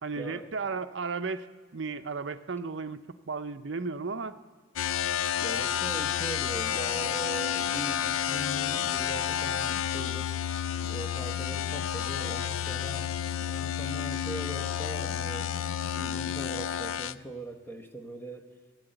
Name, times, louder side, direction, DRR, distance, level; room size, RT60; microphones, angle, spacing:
voice 1, 0.0-1.5 1.7-4.4, right 4 dB, 60° right, 10 dB, 0.6 m, -34 dB
sound 1, 4.8-17.1, left 9 dB, 85° left, 0.4 m, -30 dB
voice 2, 5.4-10.4 10.8-13.1 13.5-18.5, right 1 dB, 10° left, 5 dB, 1.0 m, -40 dB
15.5 x 7.8 x 9.0 m, 1.4 s
head